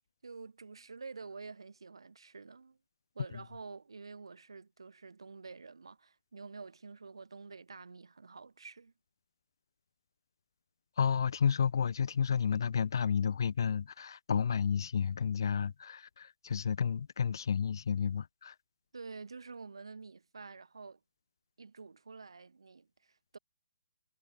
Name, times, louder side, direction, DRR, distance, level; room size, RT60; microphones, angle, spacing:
voice 1, 0.2-2.8 3.1-8.9 18.9-21.0 21.6-23.4, right 4 dB, 85° right, 4.9 m, -48 dB
voice 2, 11.0-18.5, left 7 dB, 55° left, 0.6 m, -31 dB
hypercardioid pair, 165°, 3 cm